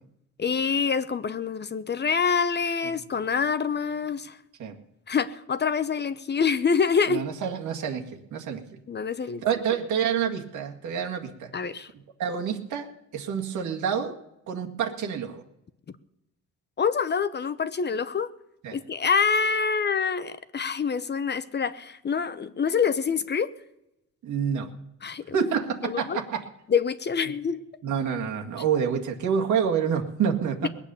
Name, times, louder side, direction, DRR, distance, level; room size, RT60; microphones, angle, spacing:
voice 1, 0.4-4.4 5.1-7.3 8.9-9.4 11.5-11.9 16.8-18.3 18.7-23.5 25.0-25.4 25.8-26.2 26.7-27.6, left 6 dB, 35° left, 13 dB, 0.8 m, -26 dB
voice 2, 7.1-8.6 9.4-11.5 12.2-14.2 14.5-15.4 18.6-18.8 24.2-24.7 25.3-26.5 27.8-30.7, right 7 dB, 75° right, 2 dB, 2.0 m, -28 dB
20.0 x 8.4 x 7.0 m, 0.86 s
cardioid pair, 90°, 30 cm